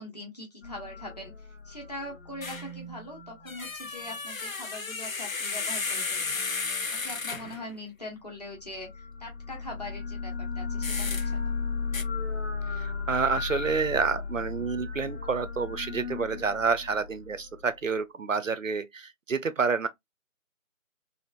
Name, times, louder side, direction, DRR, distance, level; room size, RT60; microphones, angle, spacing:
voice 1, 0.0-6.5 7.0-11.4, left 1 dB, 30° left, 1.2 m, -42 dB
sound 1, 0.6-4.2 8.5-17.7, left 4 dB, 55° left, 1.1 m, -35 dB
sound 2, 2.4-2.7 3.4-7.7 10.8-11.3 11.9-12.0, left 4 dB, 70° left, 0.7 m, -33 dB
voice 2, 12.7-19.9, right 5 dB, 65° right, 0.6 m, -29 dB
3.4 x 2.5 x 2.4 m
figure-of-eight pair, 160°, 41 cm